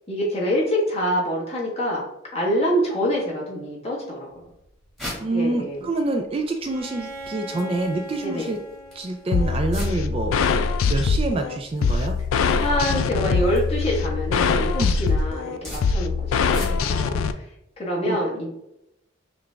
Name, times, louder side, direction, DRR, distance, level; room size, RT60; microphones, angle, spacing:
voice 1, 0.1-2.0 2.3-4.3 5.3-5.9 8.2-8.5 12.6-17.5 17.8-18.5, equal, 30° left, -4 dB, 1.4 m, -26 dB
sound 1, 4.3-17.1, equal, ahead, 1.5 m, -43 dB
voice 2, 5.2-8.6 8.9-10.4 10.7-12.2 14.8-15.0 18.0-18.2, right 2 dB, 30° right, 4 dB, 0.3 m, -26 dB
Bowed string instrument, 6.6-10.4, right 1 dB, 55° right, 1.1 m, -40 dB
sound 2, 9.3-17.3, left 5 dB, 80° left, 0.3 m, -23 dB
5.7 x 2.4 x 3.3 m, 0.83 s
head